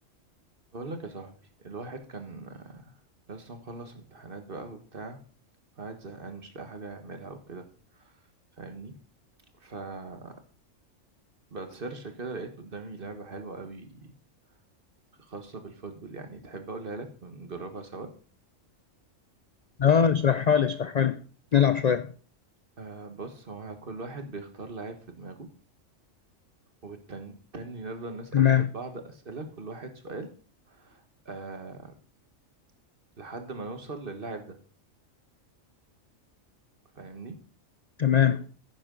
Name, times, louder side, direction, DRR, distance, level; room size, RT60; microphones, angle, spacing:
voice 1, 0.7-1.3 1.6-2.9 3.3-5.2 5.8-8.1 8.6-8.9 9.6-10.4 11.5-14.0 15.2-18.1 22.8-25.5 26.8-30.3 30.7-31.9 33.2-34.6 36.9-37.4, right 3 dB, 45° right, 6 dB, 1.5 m, -40 dB
voice 2, 19.8-21.2 21.5-22.1 28.3-28.7 38.0-38.4, left 8 dB, 70° left, 12 dB, 0.4 m, -21 dB
10.5 x 10.0 x 3.9 m, 0.40 s
omnidirectional pair, 1.4 m